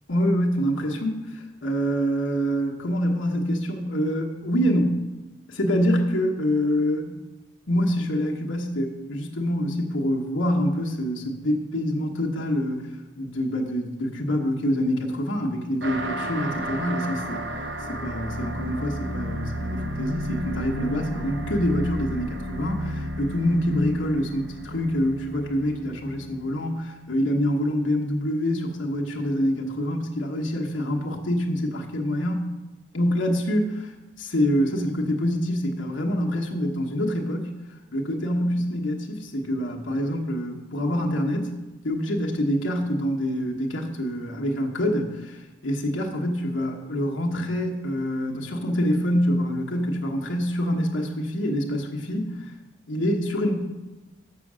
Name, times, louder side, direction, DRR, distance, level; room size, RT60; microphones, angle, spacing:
voice 1, 0.1-5.1 5.5-7.2 7.7-12.9 13.2-17.4 17.9-32.5 32.9-33.9 34.2-37.5 37.9-41.6 41.8-52.5 52.9-53.6, equal, 85° left, 0 dB, 1.2 m, -26 dB
sound 1, 15.8-26.8, equal, 65° right, 0.9 m, -32 dB
6.8 x 6.5 x 6.2 m, 1.1 s
head